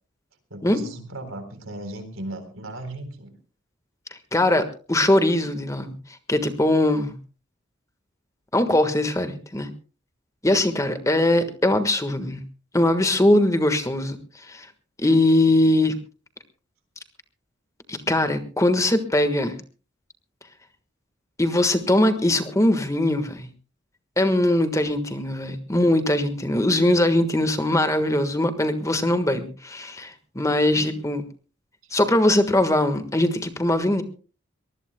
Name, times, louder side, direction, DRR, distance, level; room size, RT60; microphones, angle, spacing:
voice 1, 0.5-3.4 30.8-30.9 31.8-31.9, right 1 dB, 90° right, 8 dB, 3.9 m, -36 dB
voice 2, 4.3-5.9 6.3-7.1 8.5-9.7 10.4-12.4 12.7-14.2 14.5-14.7 15.0-15.9 17.9-19.5 21.4-23.5 24.2-31.2 31.9-34.0, left 1 dB, 15° left, 8 dB, 1.5 m, -21 dB
24.0 x 19.5 x 2.2 m, 0.36 s
head